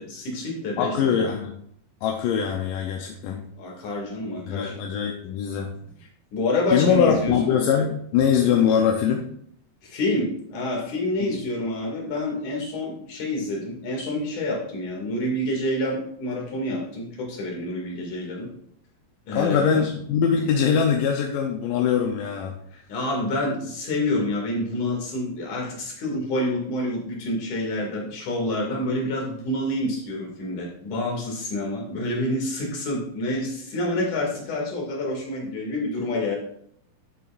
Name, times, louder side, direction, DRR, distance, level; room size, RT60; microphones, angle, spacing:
voice 1, 0.0-1.3 3.6-4.8 6.3-7.6 9.8-18.5 19.3-19.9 22.7-36.4, left 1 dB, 60° left, -1 dB, 3.7 m, -28 dB
voice 2, 0.8-1.5 2.0-3.4 4.5-5.7 6.7-9.3 19.3-22.6, left 7 dB, 75° left, 2 dB, 2.2 m, -22 dB
12.5 x 7.1 x 2.5 m, 0.68 s
omnidirectional pair, 4.2 m